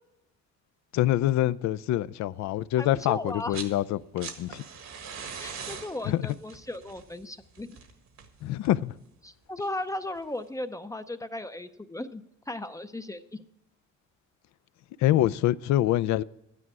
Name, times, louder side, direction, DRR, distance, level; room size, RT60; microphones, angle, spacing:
voice 1, 0.9-4.7 6.0-6.2 8.4-9.0 15.0-16.2, left 14 dB, 70° left, 0.5 m, -25 dB
voice 2, 2.8-3.6 5.4-7.8 9.2-13.4, left 1 dB, 10° left, 0.5 m, -36 dB
sound 1, 3.3-3.8 4.0-8.9 10.1-10.2, right 6 dB, 65° right, 1.7 m, -42 dB
12.5 x 9.9 x 4.7 m
cardioid pair, 120°, 29 cm